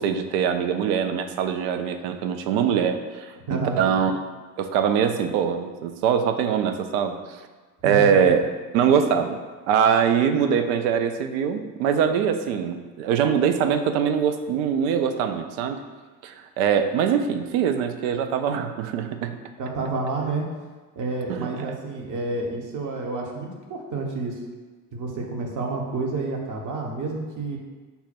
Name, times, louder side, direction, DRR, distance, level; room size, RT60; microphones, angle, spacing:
voice 1, 0.0-4.2 4.6-7.4 7.8-8.4 8.7-9.4 9.7-15.8 16.2-19.4 21.3-21.8, right 7 dB, 65° right, 8 dB, 0.5 m, -23 dB
voice 2, 3.5-3.9 7.8-8.2 19.6-20.4 21.0-24.4 24.9-27.6, right 3 dB, 40° right, 0 dB, 1.0 m, -29 dB
5.5 x 2.2 x 4.2 m, 1.3 s
figure-of-eight pair, 60°, 45 cm